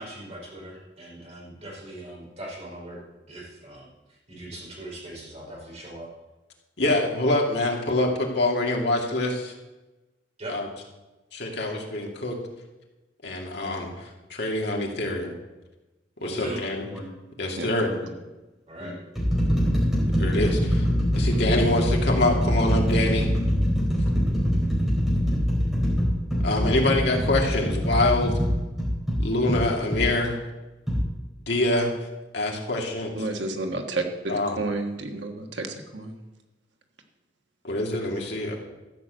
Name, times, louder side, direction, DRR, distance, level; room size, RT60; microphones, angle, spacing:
voice 1, 0.0-3.0 3.3-6.1 10.4-10.6 16.2-16.6 18.7-18.9, right 1 dB, 35° right, -3 dB, 5.0 m, -40 dB
voice 2, 6.8-9.5 10.5-10.7 11.3-12.3 13.2-13.9 14.3-15.3 16.2-16.9 17.4-17.9 20.2-20.8 21.1-23.3 26.4-28.3 29.2-30.4 31.5-31.9 32.3-33.1 34.3-34.6 37.6-38.6, left 2 dB, 65° left, 0 dB, 2.5 m, -25 dB
sound 1, 16.9-17.1 18.0-18.1 18.8-30.1 30.9-31.0, equal, 5° right, 4.2 m, -24 dB
voice 3, 33.2-36.2, right 2 dB, 85° right, 4 dB, 1.4 m, -31 dB
13.5 x 6.8 x 8.1 m, 1.1 s
head